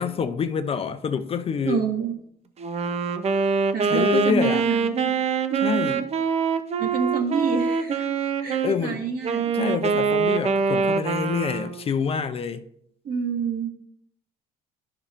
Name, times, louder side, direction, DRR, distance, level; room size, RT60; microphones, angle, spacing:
voice 1, 0.0-1.9 3.8-4.7 5.6-6.1 8.6-9.0 9.5-12.6, left 6 dB, 35° left, 0.4 m, -26 dB
voice 2, 1.6-2.2 3.7-5.2 5.5-6.0 6.8-8.0 8.4-9.5 13.0-13.7, right 6 dB, 60° right, 1.5 m, -27 dB
Wind instrument woodwind instrument, 2.6-8.7 9.2-11.9, right 5 dB, 40° right, 0.5 m, -24 dB
10.5 x 5.5 x 2.4 m
cardioid pair, 110°, 17 cm